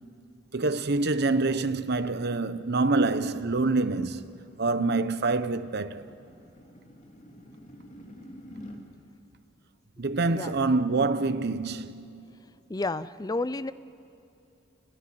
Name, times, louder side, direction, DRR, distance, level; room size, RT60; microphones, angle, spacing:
voice 1, 0.5-4.3 4.6-6.1 10.0-12.2, right 3 dB, 55° right, 1.0 m, -26 dB
sound 1, 2.8-8.8, equal, 40° left, 2.9 m, -49 dB
voice 2, 12.7-13.7, left 2 dB, 20° left, 0.5 m, -31 dB
29.0 x 20.5 x 7.7 m
head